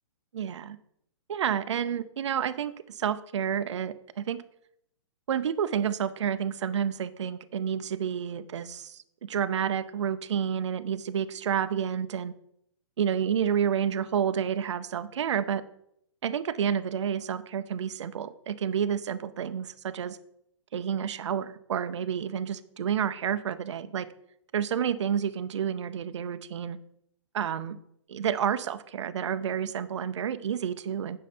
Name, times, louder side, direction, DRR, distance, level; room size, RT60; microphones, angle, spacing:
voice 1, 0.3-0.8 1.3-4.4 5.3-12.3 13.0-15.6 16.2-20.2 20.7-24.1 24.5-26.8 27.3-27.8 28.1-31.2, right 8 dB, 60° right, 12 dB, 0.6 m, -30 dB
10.0 x 6.4 x 4.3 m, 0.74 s
hypercardioid pair, 175°, 17 cm